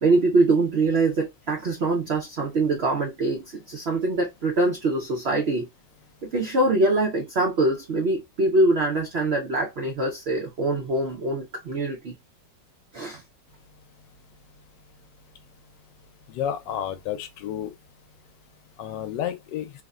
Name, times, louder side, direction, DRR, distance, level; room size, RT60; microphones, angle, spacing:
voice 1, 0.0-5.7 6.2-12.1 12.9-13.2, right 2 dB, 90° right, 0.5 m, -23 dB
voice 2, 16.3-17.7 18.8-19.7, left 10 dB, 80° left, 1.2 m, -31 dB
3.4 x 2.1 x 2.3 m
omnidirectional pair, 1.9 m